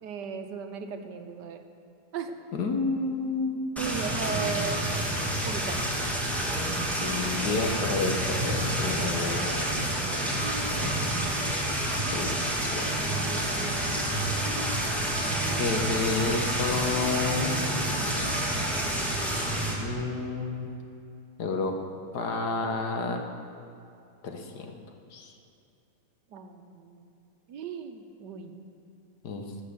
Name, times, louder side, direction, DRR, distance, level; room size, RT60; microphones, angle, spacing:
voice 1, 0.0-1.6 2.1-2.3 3.8-4.8 5.4-5.8 12.9-14.6 26.3-27.1 27.5-28.5, right 6 dB, 80° right, 6 dB, 1.5 m, -37 dB
voice 2, 2.5-3.6 7.0-11.1 12.1-12.3 12.6-13.3 15.6-17.7 19.8-20.7 21.4-21.7 22.1-23.2 24.2-24.7 25.1-25.3 29.2-29.5, left 4 dB, 70° left, 4 dB, 1.8 m, -31 dB
sound 1, 3.8-19.7, right 1 dB, ahead, 2.1 m, -28 dB
19.5 x 7.6 x 7.0 m, 2.6 s
omnidirectional pair, 1.8 m